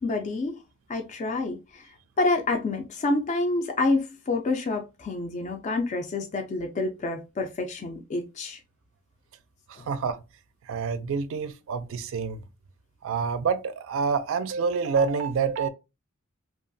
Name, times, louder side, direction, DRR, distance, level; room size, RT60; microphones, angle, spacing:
voice 1, 0.0-0.6 0.9-1.8 2.2-8.6 9.8-9.9, left 2 dB, 35° left, 0.3 m, -28 dB
voice 2, 9.7-10.2 10.7-12.4 13.0-15.7, right 5 dB, 65° right, 0.4 m, -27 dB
2.9 x 2.3 x 2.5 m
head